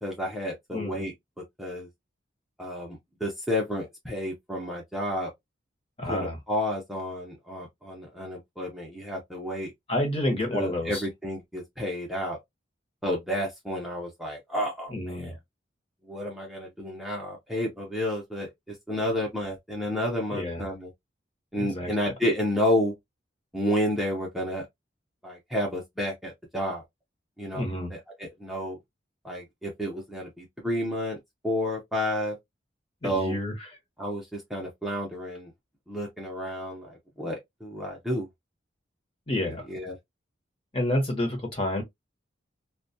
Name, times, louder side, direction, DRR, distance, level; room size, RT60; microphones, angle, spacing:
voice 1, 0.0-1.1 1.6-1.9 2.6-5.3 6.0-9.7 10.5-12.4 13.0-15.3 16.0-20.9 21.5-22.9 23.5-24.7 25.2-26.8 27.4-27.6 27.9-28.8 29.2-31.2 31.4-32.4 33.0-33.4 34.0-35.5 35.9-38.3 39.5-40.0, left 1 dB, ahead, 0.6 m, -31 dB
voice 2, 6.0-6.4 9.9-11.0 14.9-15.3 20.3-20.6 21.5-21.9 27.5-27.9 33.0-33.5 39.3-39.7 40.7-41.8, left 1 dB, 30° left, 0.8 m, -29 dB
2.2 x 2.2 x 2.6 m
head